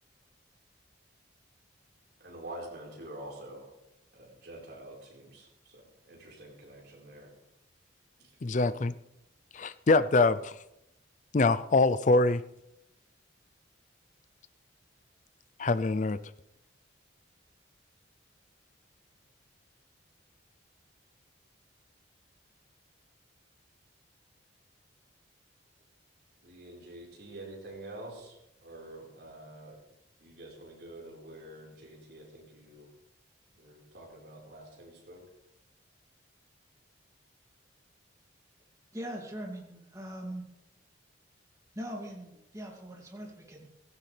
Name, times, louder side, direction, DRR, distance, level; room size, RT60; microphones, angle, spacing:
voice 1, 2.2-3.7 4.1-7.3 8.2-8.3 26.4-29.8 30.2-32.9 33.5-35.2, right 1 dB, 55° right, 4.4 m, -47 dB
voice 2, 8.4-8.9 9.5-10.5 11.3-12.4 15.6-16.2, left 3 dB, 40° left, 0.5 m, -24 dB
voice 3, 38.9-40.4 41.7-43.7, equal, 15° right, 2.4 m, -41 dB
16.0 x 16.0 x 3.4 m
head